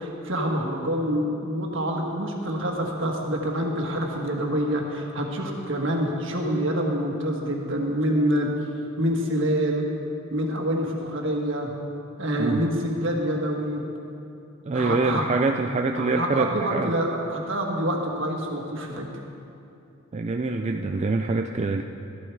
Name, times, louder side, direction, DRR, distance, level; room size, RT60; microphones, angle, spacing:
voice 1, 0.0-8.7 9.0-9.9 10.3-11.7 12.2-13.8 14.7-15.4 16.0-19.1, equal, 65° right, 1 dB, 1.6 m, -26 dB
voice 2, 14.7-16.9 20.1-21.8, right 3 dB, 35° right, 4 dB, 0.4 m, -25 dB
13.0 x 11.5 x 4.7 m, 2.7 s
head